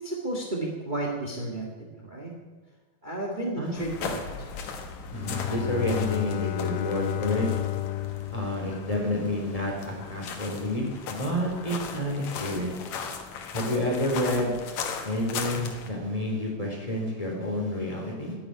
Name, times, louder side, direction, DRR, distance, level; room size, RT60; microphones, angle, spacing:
voice 1, 0.0-2.3 3.0-4.5, right 2 dB, 30° right, -1 dB, 0.9 m, -33 dB
sound 1, 3.7-15.9, left 5 dB, 60° left, 2.5 m, -38 dB
Bowed string instrument, 5.1-9.6, left 15 dB, 80° left, 1.9 m, -32 dB
voice 2, 5.1-7.5 8.3-12.7 13.5-14.5 15.0-18.4, left 1 dB, 10° left, -1 dB, 3.4 m, -29 dB
11.5 x 11.0 x 9.6 m, 1.4 s
omnidirectional pair, 4.2 m